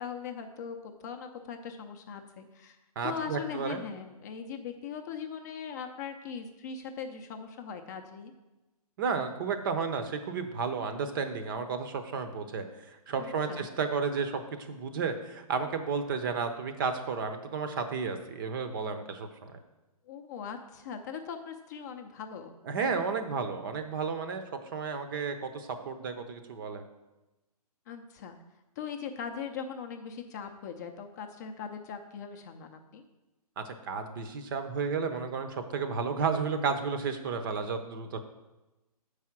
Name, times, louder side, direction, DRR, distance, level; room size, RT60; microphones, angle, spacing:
voice 1, 0.0-2.8 3.0-8.3 13.2-13.7 20.1-22.5 27.9-28.4 28.8-33.1, left 6 dB, 25° left, 5 dB, 0.5 m, -40 dB
voice 2, 3.0-3.8 9.0-19.5 22.6-24.4 24.7-26.8 33.6-38.2, right 5 dB, 35° right, 8 dB, 0.7 m, -32 dB
7.0 x 4.8 x 5.9 m, 1.0 s
hypercardioid pair, 145°, 20 cm